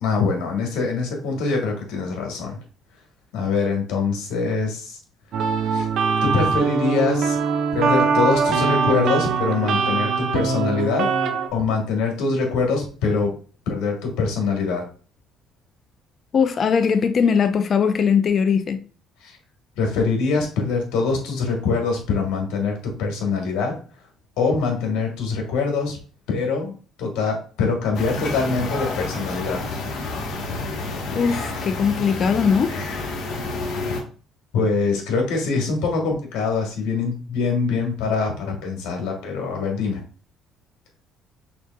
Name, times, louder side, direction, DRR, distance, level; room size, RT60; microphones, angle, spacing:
voice 1, 0.0-2.6 3.3-5.0 5.7-5.9 6.2-7.4 7.7-11.1 11.5-13.3 13.7-14.9 19.2-19.4 19.8-23.8 24.4-26.0 26.3-26.7 27.0-29.6 34.5-40.0, left 4 dB, 90° left, 1.5 m, -23 dB
sound 1, 5.3-11.5, right 5 dB, 65° right, 0.7 m, -22 dB
voice 2, 16.3-18.8 31.1-32.7, left 6 dB, 45° left, 0.6 m, -20 dB
sound 2, 27.9-34.0, left 3 dB, 70° left, 1.2 m, -29 dB
6.1 x 2.9 x 2.3 m
cardioid pair, 105°, 0 cm